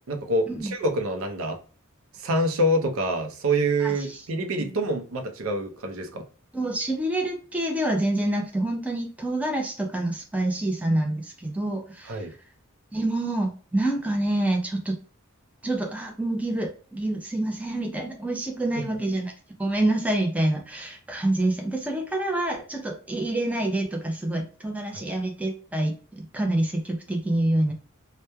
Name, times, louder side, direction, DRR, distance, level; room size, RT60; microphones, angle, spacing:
voice 1, 0.1-1.6 2.2-6.2 12.0-12.3 24.9-25.1, right 1 dB, 75° right, 5 dB, 0.5 m, -26 dB
voice 2, 3.8-4.2 4.6-4.7 6.5-12.3 12.9-14.9 15.6-19.3 19.6-27.7, right 1 dB, 5° right, 1 dB, 0.4 m, -27 dB
2.9 x 2.1 x 2.2 m, 0.38 s
head